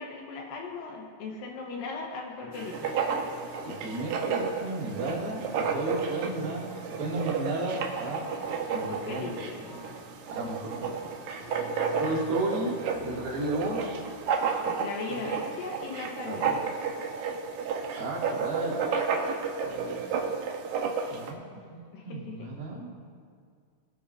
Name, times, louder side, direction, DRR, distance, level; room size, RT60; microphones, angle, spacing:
voice 1, 0.0-3.0 8.7-9.6 14.6-16.6 21.9-22.5, left 3 dB, 80° left, 0 dB, 2.7 m, -38 dB
sound 1, 2.4-14.4, left 2 dB, 55° left, 2.5 m, -49 dB
Writing, 2.5-21.3, right 5 dB, 70° right, 2.0 m, -32 dB
voice 2, 3.7-8.3 8.7-9.4 9.7-9.8 10.3-11.1 12.0-13.9 15.1-15.5 16.2-16.6 17.9-18.9 19.6-20.1 21.1-21.8 22.0-22.9, right 2 dB, 90° right, -5 dB, 4.2 m, -34 dB
24.5 x 8.6 x 2.6 m, 2.1 s
omnidirectional pair, 4.1 m